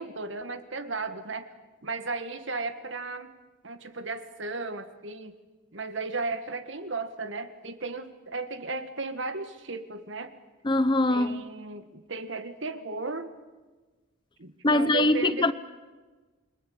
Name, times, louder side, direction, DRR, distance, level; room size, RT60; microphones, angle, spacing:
voice 1, 0.0-1.5 1.8-3.3 3.6-5.4 5.7-10.3 11.1-13.3 14.4-15.5, right 3 dB, 60° right, 1.7 m, -35 dB
voice 2, 10.6-11.4 14.6-15.5, left 2 dB, 20° left, 0.8 m, -22 dB
28.5 x 22.5 x 8.7 m
head